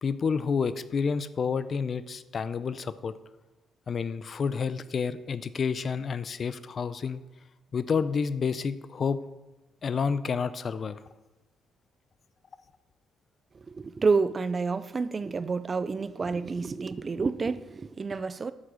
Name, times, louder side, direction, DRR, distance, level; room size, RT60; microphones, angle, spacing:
voice 1, 0.0-3.1 3.9-7.2 7.7-9.2 9.8-11.0, left 5 dB, 45° left, 0.6 m, -29 dB
voice 2, 13.7-18.5, right 4 dB, 35° right, 0.5 m, -29 dB
8.3 x 7.6 x 6.3 m
cardioid pair, 90°, 0 cm